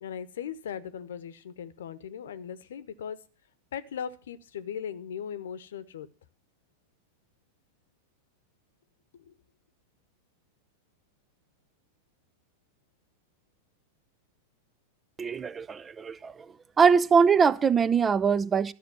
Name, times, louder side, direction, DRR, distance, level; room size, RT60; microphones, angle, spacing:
voice 1, 0.0-3.2 3.7-6.1 9.3-9.4, left 8 dB, 65° left, 1.0 m, -38 dB
voice 2, 15.2-16.3 16.8-18.7, right 6 dB, 20° right, 0.6 m, -22 dB
13.5 x 6.6 x 7.8 m
figure-of-eight pair, 90°, 0 cm